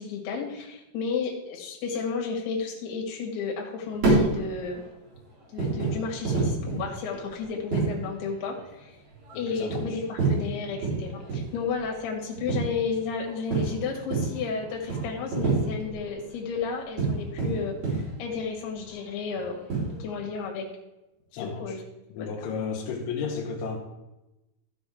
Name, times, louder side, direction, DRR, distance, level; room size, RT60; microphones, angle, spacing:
voice 1, 0.0-4.8 5.5-9.0 9.4-19.6 20.0-20.7 21.4-21.8 22.2-22.3, left 5 dB, 65° left, 0 dB, 3.6 m, -32 dB
sound 1, 3.9-20.0, right 3 dB, 40° right, 5.0 m, -30 dB
voice 2, 9.3-9.8 21.3-21.8 22.1-23.8, left 5 dB, 85° left, 1 dB, 3.3 m, -33 dB
13.5 x 6.9 x 3.5 m, 0.95 s
omnidirectional pair, 5.2 m